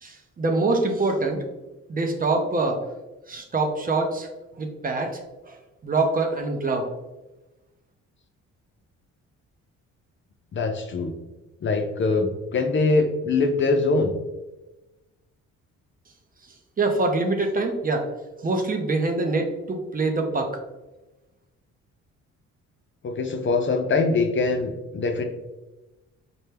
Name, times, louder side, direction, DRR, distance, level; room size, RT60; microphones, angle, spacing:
voice 1, 0.0-1.4 1.9-2.8 3.3-4.3 4.6-5.2 5.5-6.9 16.8-18.1 18.4-20.5, right 3 dB, 30° right, 3 dB, 0.6 m, -24 dB
voice 2, 10.5-11.1 11.6-14.2 23.0-25.2, left 3 dB, 40° left, 5 dB, 0.5 m, -23 dB
4.3 x 2.2 x 3.3 m, 1.1 s
cardioid pair, 90°, 30 cm